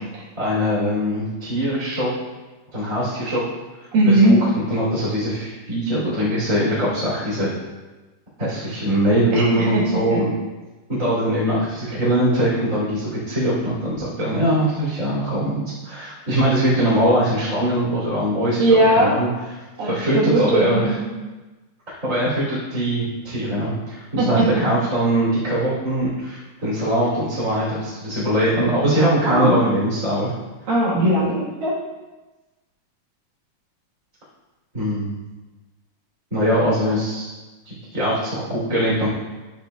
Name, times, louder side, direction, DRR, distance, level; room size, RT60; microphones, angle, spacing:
voice 1, 0.3-2.1 2.7-3.4 4.1-7.5 8.4-10.3 10.9-19.3 19.9-21.0 21.9-30.3 34.7-35.1 36.3-37.3 37.6-39.1, right 1 dB, 20° right, -10 dB, 2.7 m, -22 dB
voice 2, 3.9-4.4 9.3-10.2 18.6-19.2 19.8-21.1 24.2-24.5 29.2-29.5 30.7-31.7, right 1 dB, 65° right, -5 dB, 3.1 m, -18 dB
13.0 x 6.6 x 2.4 m, 1.2 s
omnidirectional pair, 4.4 m